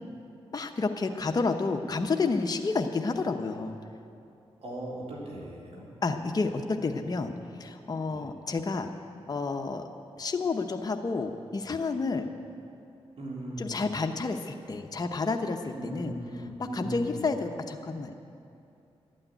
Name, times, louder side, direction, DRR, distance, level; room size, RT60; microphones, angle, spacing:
voice 1, 0.5-3.8 6.0-8.9 9.3-9.9 10.2-12.3 13.6-16.1 16.7-18.1, left 4 dB, 35° left, 4 dB, 0.8 m, -30 dB
voice 2, 4.6-5.9 8.1-8.2 13.2-13.8 15.7-17.2, right 1 dB, 75° right, -4 dB, 3.7 m, -38 dB
12.0 x 8.7 x 9.1 m, 2.6 s
cardioid pair, 65°, 11 cm